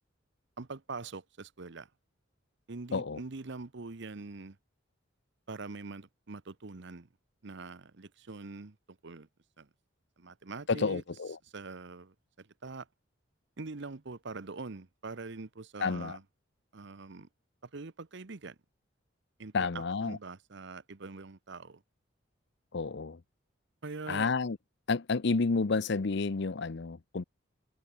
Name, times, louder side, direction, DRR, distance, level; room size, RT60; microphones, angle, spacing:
voice 1, 0.6-1.9 2.7-4.6 5.5-7.1 7.4-9.3 9.6-9.7 10.2-11.0 11.4-12.9 13.6-16.2 16.7-17.3 17.6-18.6 19.4-21.8 23.8-24.3, right 3 dB, 60° right, 0.9 m, -43 dB
voice 2, 10.7-11.4 15.8-16.2 19.5-20.2 22.7-23.2 24.1-24.6 24.9-27.2, left 4 dB, 60° left, 0.7 m, -30 dB
head